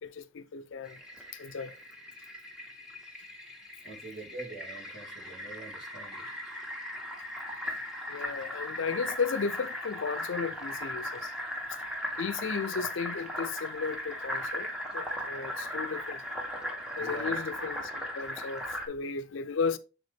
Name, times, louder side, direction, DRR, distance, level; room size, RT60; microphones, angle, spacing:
voice 1, 0.0-1.0 1.3-1.8 8.1-11.3 11.7-11.8 12.2-16.2 17.0-19.8, left 5 dB, 80° left, 0.5 m, -35 dB
Fill (with liquid), 0.8-18.9, equal, 5° right, 0.9 m, -38 dB
voice 2, 3.8-6.3 17.0-17.4, right 3 dB, 70° right, 2.2 m, -45 dB
7.1 x 3.9 x 3.3 m
head